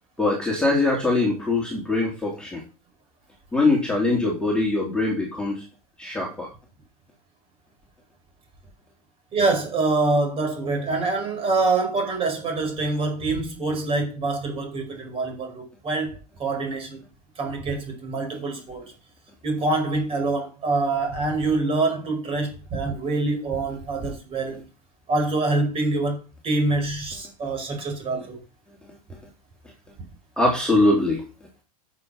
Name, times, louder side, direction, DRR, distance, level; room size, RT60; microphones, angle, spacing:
voice 1, 0.2-2.6 3.5-5.6 6.0-6.5 28.9-29.0 30.4-31.2, left 2 dB, 5° left, 3.5 m, -22 dB
voice 2, 9.3-17.0 17.3-18.9 19.4-24.6 25.1-28.4, right 3 dB, 30° right, 5.0 m, -25 dB
9.5 x 6.9 x 5.7 m
hypercardioid pair, 100°, 19 cm